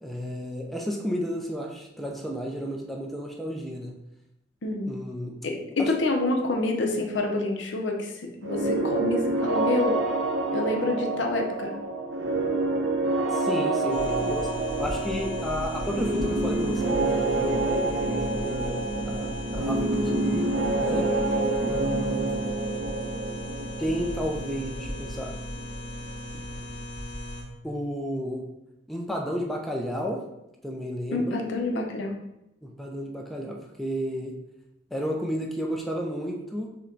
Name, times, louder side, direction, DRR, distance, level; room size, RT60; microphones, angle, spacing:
voice 1, 0.0-4.0 4.9-5.4 5.8-5.9 13.3-14.5 14.8-21.1 21.7-22.4 23.8-25.3 27.6-28.4 28.9-30.2 30.6-31.4 32.6-34.3 34.9-36.7, equal, ahead, 0 dB, 0.4 m, -32 dB
voice 2, 4.6-4.9 5.4-10.0 10.5-11.8 31.1-32.1, left 2 dB, 80° left, 2 dB, 0.7 m, -27 dB
sound 1, 8.4-26.1, right 2 dB, 80° right, 0.6 m, -28 dB
sound 2, 13.9-27.4, left 1 dB, 45° left, 1.6 m, -37 dB
5.5 x 2.2 x 3.9 m, 0.87 s
head